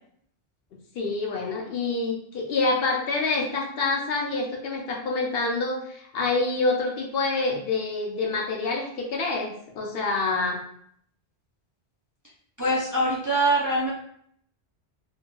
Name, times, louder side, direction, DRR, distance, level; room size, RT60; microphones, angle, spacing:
voice 1, 0.9-10.6, left 3 dB, 70° left, 1 dB, 0.8 m, -27 dB
voice 2, 12.6-13.9, right 1 dB, 35° right, -6 dB, 0.3 m, -23 dB
2.8 x 2.5 x 2.2 m, 0.66 s
omnidirectional pair, 1.1 m